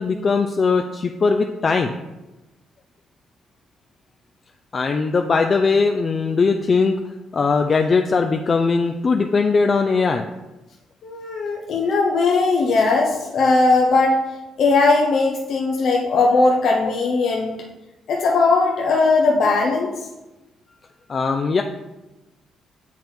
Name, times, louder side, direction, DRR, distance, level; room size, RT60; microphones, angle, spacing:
voice 1, 0.0-2.0 4.7-6.9 7.3-10.3 16.8-16.9 21.1-21.6, left 4 dB, 40° left, 5 dB, 0.4 m, -19 dB
voice 2, 11.0-14.2 14.6-17.6 18.1-20.0, left 3 dB, 65° left, -1 dB, 0.7 m, -18 dB
7.3 x 3.8 x 4.4 m, 1.0 s
cardioid pair, 90°, 0 cm